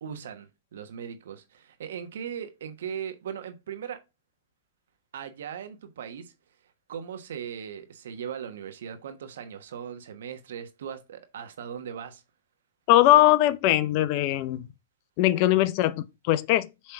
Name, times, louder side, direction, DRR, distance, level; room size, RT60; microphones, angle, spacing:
voice 1, 0.0-4.0 5.1-6.3 6.9-12.2, right 8 dB, 70° right, 1.2 m, -38 dB
voice 2, 12.9-14.7 15.2-16.9, left 14 dB, 45° left, 0.5 m, -21 dB
7.3 x 3.3 x 4.6 m
hypercardioid pair, 120°, 0 cm